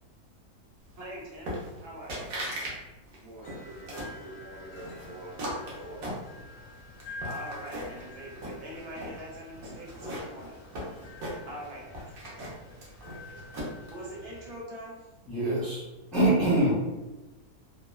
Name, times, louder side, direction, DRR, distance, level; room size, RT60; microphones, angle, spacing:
voice 1, 1.0-2.2 7.2-10.6 11.5-12.2 13.9-15.1, right 1 dB, 90° right, -5 dB, 1.3 m, -43 dB
sound 1, 1.5-1.8 2.1-2.8 3.1-4.2 4.8-6.6 7.0-8.0 8.4-9.2 9.6-11.7 11.9-13.9, equal, 70° right, 1.1 m, -37 dB
voice 2, 3.2-6.1 13.0-13.4, right 1 dB, 50° right, -5 dB, 0.9 m, -46 dB
sound 2, 3.4-14.6, left 2 dB, 75° left, 1.0 m, -48 dB
voice 3, 15.3-16.7, right 1 dB, ahead, -8 dB, 0.4 m, -24 dB
2.9 x 2.1 x 2.3 m, 1.1 s
omnidirectional pair, 1.6 m